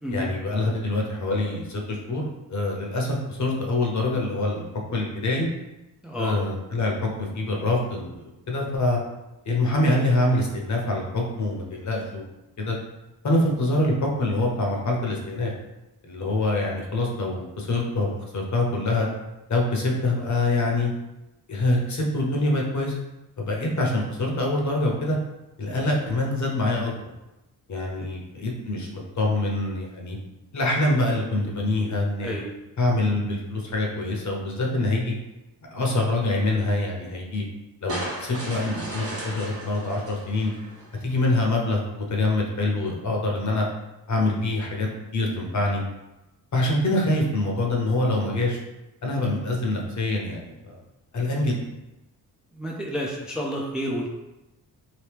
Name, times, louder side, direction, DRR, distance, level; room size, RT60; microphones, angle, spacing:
voice 1, 0.1-4.7 4.9-5.5 6.2-9.0 9.4-12.2 12.6-12.8 13.2-15.5 16.0-19.1 19.5-20.9 21.5-22.9 23.4-25.2 25.6-26.9 27.7-30.2 30.5-32.3 32.8-35.1 35.7-37.4 37.8-40.5 41.0-43.7 44.1-45.8 46.5-48.6 49.0-50.7 51.1-51.6, left 2 dB, 50° left, -1 dB, 0.8 m, -25 dB
voice 2, 6.0-6.4 32.2-32.5 52.6-54.1, equal, ahead, -2 dB, 0.4 m, -30 dB
sound 1, 37.9-41.1, right 1 dB, 40° right, 1.0 m, -35 dB
3.0 x 2.7 x 3.3 m, 0.97 s
cardioid pair, 105°, 37 cm